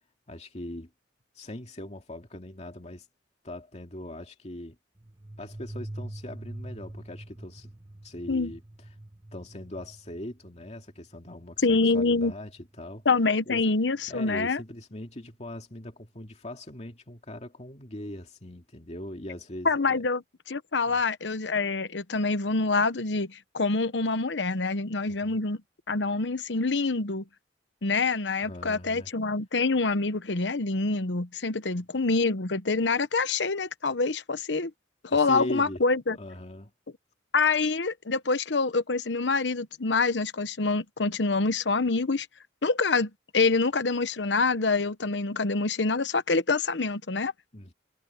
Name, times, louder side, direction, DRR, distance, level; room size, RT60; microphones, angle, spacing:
voice 1, 0.3-0.9 1.3-3.1 3.4-4.8 5.4-7.7 8.0-8.6 9.3-13.0 13.5-13.6 14.1-20.1 20.8-21.0 25.1-25.4 28.4-29.1 31.7-31.8 35.1-35.8 36.2-36.7 47.5-47.7, left 1 dB, 40° left, 2.4 m, -40 dB
sound 1, 5.0-13.4, right 1 dB, 25° right, 1.1 m, -44 dB
voice 2, 11.6-12.3 13.0-14.6 19.6-20.2 20.5-25.6 25.9-27.2 27.8-34.7 35.0-36.2 37.3-42.3 42.6-47.3, left 3 dB, 75° left, 1.0 m, -26 dB
head